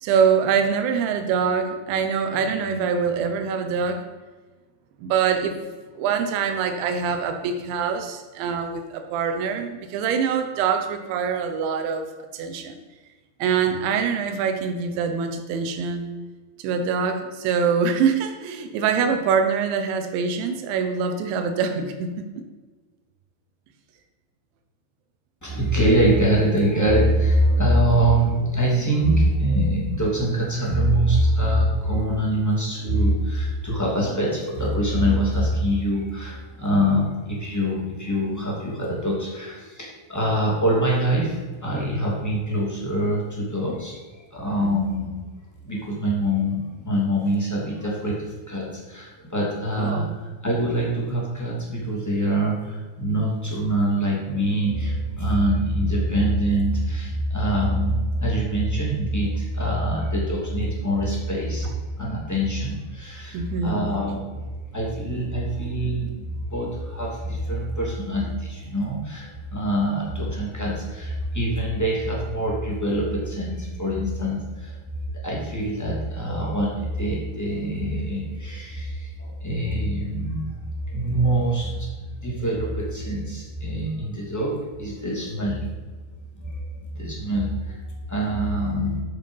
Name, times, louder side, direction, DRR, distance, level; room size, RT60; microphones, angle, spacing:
voice 1, 0.0-4.0 5.0-5.5 6.0-12.1 12.3-12.8 13.4-16.1 16.6-22.1 44.6-44.7 49.8-50.1 61.6-61.7 63.3-63.8, right 6 dB, 85° right, 6 dB, 3.3 m, -24 dB
voice 2, 25.4-45.1 45.6-64.4 64.7-74.8 75.2-80.4 80.9-81.9 82.2-85.7 86.4-89.0, right 1 dB, 5° left, -4 dB, 1.5 m, -24 dB
12.0 x 6.7 x 5.4 m, 1.3 s
omnidirectional pair, 5.1 m